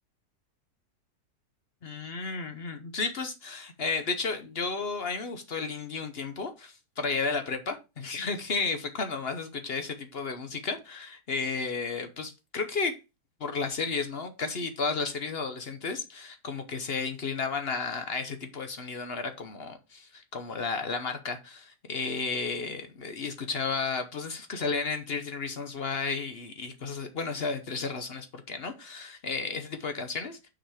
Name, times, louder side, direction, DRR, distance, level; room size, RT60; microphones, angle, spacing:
voice 1, 1.8-13.0 13.4-30.5, left 4 dB, 50° left, 0.9 m, -33 dB
6.0 x 5.0 x 4.8 m
omnidirectional pair, 1.7 m